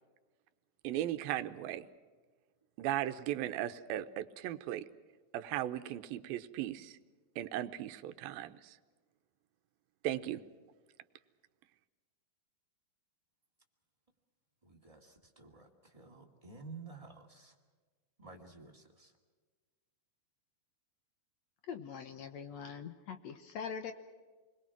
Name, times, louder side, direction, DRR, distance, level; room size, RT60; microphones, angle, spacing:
voice 1, 0.8-1.9 2.8-4.9 5.3-7.0 7.4-8.8 10.0-10.4, right 12 dB, 80° right, 10 dB, 2.7 m, -37 dB
voice 2, 14.6-17.5 18.2-19.1, right 4 dB, 10° right, 1 dB, 1.7 m, -52 dB
voice 3, 21.7-23.9, left 6 dB, 70° left, 8 dB, 1.7 m, -43 dB
28.5 x 21.5 x 6.0 m, 1.4 s
omnidirectional pair, 4.3 m